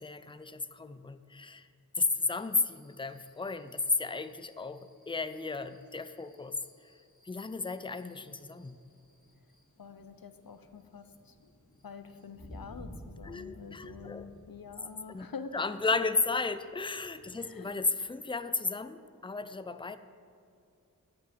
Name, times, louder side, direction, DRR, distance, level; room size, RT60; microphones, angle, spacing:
voice 1, 0.0-1.7 1.9-6.9 7.2-8.9 13.2-14.3 15.1-15.3 15.5-20.0, left 3 dB, 15° left, 12 dB, 0.4 m, -34 dB
sound 1, 2.2-18.2, equal, 55° left, 2.3 m, -56 dB
voice 2, 9.8-11.5 11.8-15.8 17.3-17.7, left 5 dB, 85° left, 10 dB, 0.7 m, -47 dB
11.0 x 7.8 x 5.2 m, 2.5 s
wide cardioid pair, 40°, 34 cm